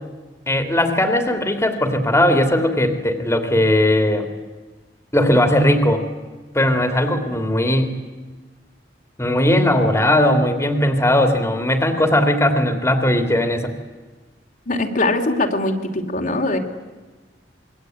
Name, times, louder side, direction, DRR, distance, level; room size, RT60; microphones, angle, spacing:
voice 1, 0.5-4.3 5.1-6.0 6.5-7.9 9.2-13.7, left 1 dB, 15° left, 7 dB, 2.8 m, -18 dB
voice 2, 14.7-16.6, left 2 dB, 50° left, 3 dB, 2.8 m, -21 dB
27.0 x 22.5 x 9.3 m, 1.3 s
head